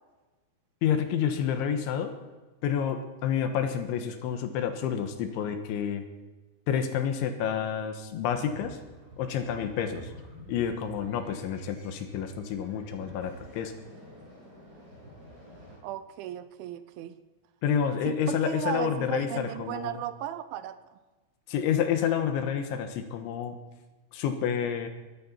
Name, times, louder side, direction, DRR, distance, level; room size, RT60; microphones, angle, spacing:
voice 1, 0.8-2.1 2.6-6.0 6.7-8.8 9.2-10.1 10.5-13.7 17.6-20.0 21.5-23.6 24.1-24.9, left 8 dB, 75° left, 7 dB, 3.4 m, -29 dB
sound 1, 8.2-15.8, equal, 20° right, 7.0 m, -49 dB
voice 2, 15.8-17.2 18.1-20.8, right 11 dB, 80° right, 12 dB, 3.0 m, -36 dB
22.0 x 13.5 x 4.4 m, 1.2 s
omnidirectional pair, 5.6 m